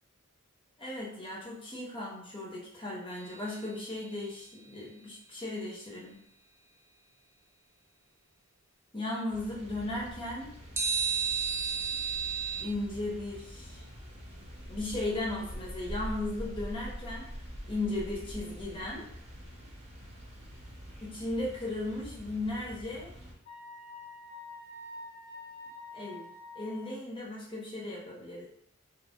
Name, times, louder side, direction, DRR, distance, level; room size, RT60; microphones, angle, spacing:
voice 1, 0.8-6.2 8.9-10.5 12.6-13.8 14.7-17.3 17.7-19.0 21.0-23.1 25.9-26.3 26.5-28.5, left 2 dB, 25° left, -4 dB, 0.8 m, -36 dB
sound 1, 3.1-4.4 10.8-12.6, right 6 dB, 10° right, 0.3 m, -33 dB
sound 2, 9.3-23.3, equal, 30° right, 0.9 m, -45 dB
Wind instrument woodwind instrument, 23.5-26.9, left 2 dB, 45° left, 1.2 m, -46 dB
3.1 x 2.4 x 3.4 m, 0.68 s
head